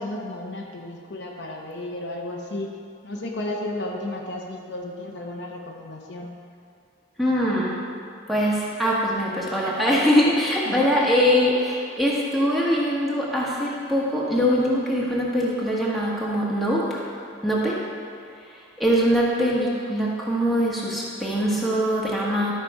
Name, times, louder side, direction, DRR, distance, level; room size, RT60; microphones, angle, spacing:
voice 1, 0.0-2.7 3.0-6.3 10.6-10.9, left 1 dB, 60° left, 0 dB, 1.0 m, -33 dB
voice 2, 7.2-7.7 8.3-17.0 17.4-17.8 18.5-22.5, equal, ahead, -6 dB, 1.5 m, -22 dB
12.5 x 5.9 x 4.9 m, 2.3 s
head